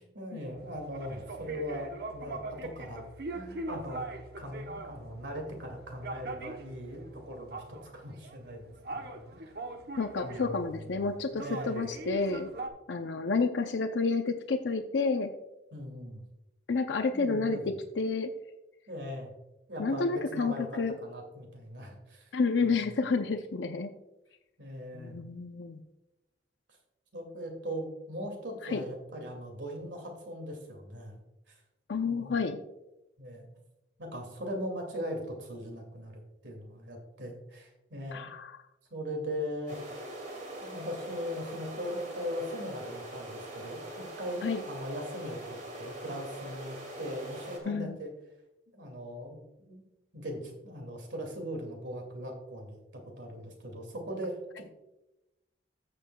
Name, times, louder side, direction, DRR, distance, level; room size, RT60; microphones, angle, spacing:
voice 1, 0.0-3.0 3.3-4.1 4.4-9.5 10.2-11.9 15.7-16.2 17.1-17.7 18.9-19.3 19.7-22.3 22.6-22.9 24.6-25.2 27.1-31.2 31.5-31.6 32.0-32.4 33.2-33.5 34.0-38.3 38.9-39.8 40.6-48.1 48.7-49.4 49.7-49.9 50.1-54.6, equal, 80° right, 3 dB, 2.3 m, -40 dB
sound 1, 0.6-12.7, right 2 dB, 60° right, 0.9 m, -42 dB
voice 2, 10.0-12.5 12.9-15.3 16.7-17.6 18.0-18.3 19.8-21.0 22.3-23.9 24.9-25.8 28.6-28.8 31.9-32.6 38.1-38.6 44.4-44.6 47.6-48.0, left 4 dB, 80° left, 7 dB, 0.6 m, -30 dB
sound 2, 39.7-47.6, right 1 dB, 45° right, 2.3 m, -42 dB
14.5 x 6.8 x 2.3 m, 0.93 s
head